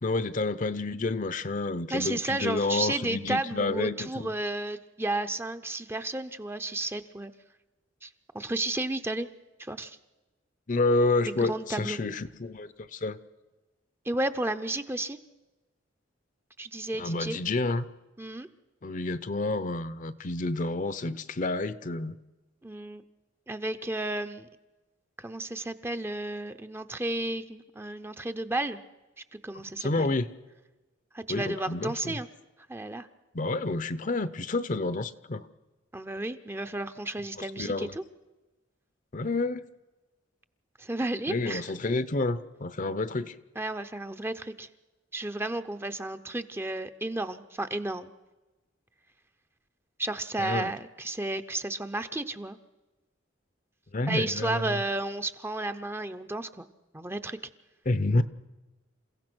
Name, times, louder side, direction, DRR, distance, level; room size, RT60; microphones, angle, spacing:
voice 1, 0.0-4.3 10.7-13.2 17.0-17.8 18.8-22.2 29.8-30.3 31.3-32.2 33.3-35.4 37.4-37.9 39.1-39.7 41.3-43.3 50.4-50.7 53.9-54.8 57.9-58.2, left 2 dB, 40° left, 14 dB, 0.7 m, -29 dB
voice 2, 1.9-7.3 8.0-8.1 8.3-9.3 9.6-10.0 11.3-12.1 14.0-15.2 16.6-17.4 18.2-18.5 22.6-23.0 23.5-24.5 25.2-28.8 29.3-30.1 31.1-32.3 32.7-33.1 35.9-38.0 40.8-41.7 43.6-44.7 45.1-48.1 50.0-52.6 54.1-56.7 56.9-57.4, right 2 dB, 10° right, 9 dB, 0.7 m, -32 dB
28.5 x 16.0 x 6.2 m, 1.1 s
head